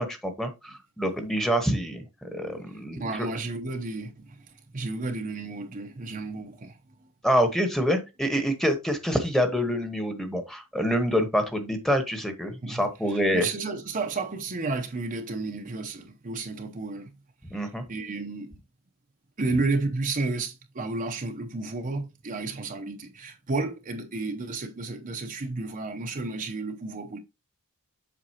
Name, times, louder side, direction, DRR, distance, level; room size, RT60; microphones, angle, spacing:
voice 1, 0.0-3.1 7.2-13.5 17.5-17.8, equal, ahead, 1.1 m, -26 dB
voice 2, 2.7-6.8 12.6-17.1 17.6-18.6 19.4-27.2, right 3 dB, 40° right, 0.7 m, -32 dB
7.7 x 5.2 x 2.8 m
head